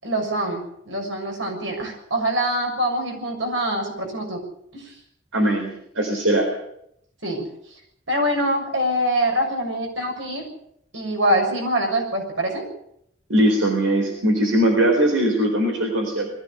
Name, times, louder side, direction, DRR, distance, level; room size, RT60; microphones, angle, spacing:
voice 1, 0.0-4.4 4.7-4.8 7.2-7.5 8.1-10.4 10.9-12.7, right 1 dB, 70° right, 2 dB, 7.0 m, -24 dB
voice 2, 5.3-6.5 13.3-16.3, right 1 dB, 85° right, 2 dB, 4.3 m, -20 dB
21.5 x 15.5 x 8.3 m, 0.73 s
head